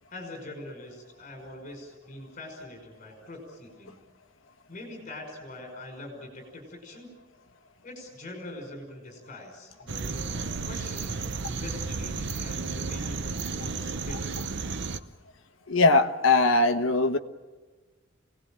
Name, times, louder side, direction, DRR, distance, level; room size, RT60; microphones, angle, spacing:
voice 1, 0.1-4.0 4.7-7.1 7.8-13.3 13.6-14.3, left 1 dB, 40° left, 5.5 m, -43 dB
sound 1, 9.9-15.0, right 4 dB, 60° right, 0.9 m, -33 dB
voice 2, 15.7-17.2, left 3 dB, 75° left, 1.2 m, -21 dB
26.5 x 18.5 x 9.0 m
head